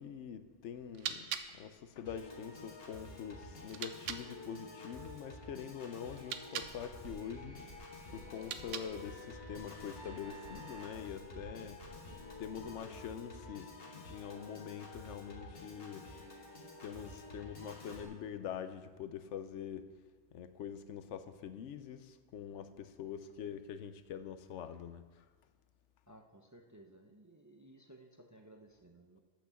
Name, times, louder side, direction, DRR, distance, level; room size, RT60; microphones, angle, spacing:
voice 1, 0.0-7.6 8.1-11.8 12.4-16.1 16.8-19.9 20.3-25.2, left 8 dB, 75° left, 11 dB, 0.9 m, -45 dB
sound 1, 0.7-4.3 6.1-6.8 8.3-9.1, right 8 dB, 85° right, 1.0 m, -44 dB
Piano / Organ, 2.1-18.1, left 2 dB, 50° left, 1.7 m, -50 dB
sound 2, 6.6-12.8, right 2 dB, 70° right, 2.5 m, -54 dB
voice 2, 12.1-13.1 26.1-29.2, right 1 dB, 20° right, 2 dB, 0.5 m, -58 dB
8.6 x 6.0 x 6.9 m, 1.4 s
omnidirectional pair, 1.2 m